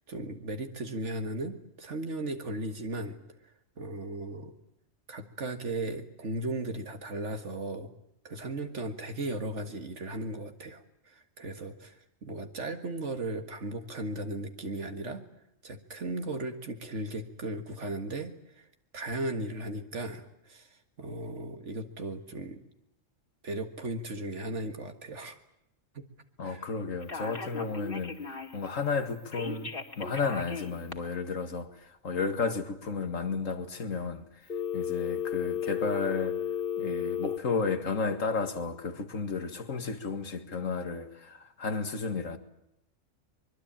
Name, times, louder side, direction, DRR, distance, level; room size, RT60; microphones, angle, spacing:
voice 1, 0.1-4.5 5.1-7.9 8.2-15.2 15.6-18.7 18.9-20.7 21.0-22.6 23.4-25.4 25.9-26.1 26.4-26.6, right 2 dB, 65° right, 2.1 m, -36 dB
voice 2, 26.4-34.4 34.7-36.4 36.8-42.4, left 4 dB, 85° left, 2.3 m, -33 dB
Telephone, 27.0-28.7 29.3-30.9 34.5-37.4, left 7 dB, 45° left, 2.6 m, -34 dB
24.0 x 22.5 x 8.9 m
omnidirectional pair, 1.3 m